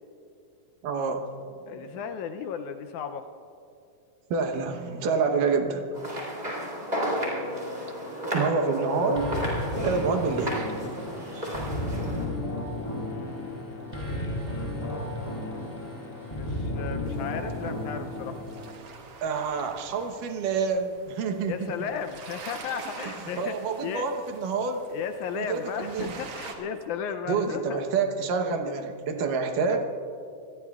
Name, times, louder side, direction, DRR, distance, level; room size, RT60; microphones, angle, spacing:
voice 1, 0.8-1.3 1.7-2.0 4.3-5.9 8.3-9.3 9.8-10.9 19.2-21.7 23.0-24.8 25.3-26.1 27.3-29.8, right 5 dB, 75° right, 5 dB, 2.6 m, -28 dB
voice 2, 1.7-3.3 7.0-8.2 12.8-14.2 15.2-18.4 21.5-23.5 23.8-24.1 24.9-27.8, left 7 dB, 80° left, 8 dB, 1.8 m, -36 dB
sound 1, 5.9-12.3, equal, 15° right, 3.4 m, -32 dB
sound 2, 9.2-18.7, left 1 dB, 10° left, 4.8 m, -33 dB
sound 3, 17.1-26.5, right 4 dB, 55° right, 2.0 m, -45 dB
27.0 x 20.5 x 2.4 m, 2.5 s
omnidirectional pair, 3.8 m